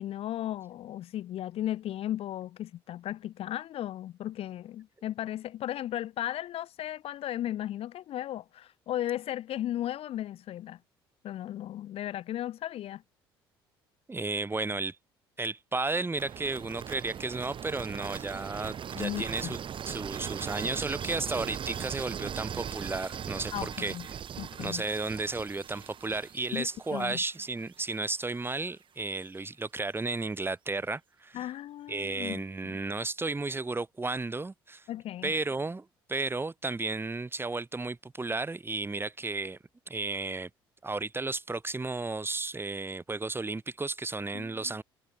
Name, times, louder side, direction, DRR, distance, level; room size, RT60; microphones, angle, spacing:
voice 1, 0.0-10.8 11.2-13.0 19.0-19.6 23.5-24.1 24.4-24.8 26.5-27.2 31.3-32.7 34.9-35.3 44.3-44.7, left 12 dB, 55° left, 2.0 m, -36 dB
voice 2, 14.1-15.0 15.4-19.6 19.9-23.9 24.6-31.5 31.9-34.9 35.2-39.6 39.9-40.5 40.8-44.8, right 3 dB, 20° right, 4.0 m, -33 dB
sound 1, 16.1-28.1, right 8 dB, 45° right, 5.1 m, -39 dB
figure-of-eight pair, 55°, 12 cm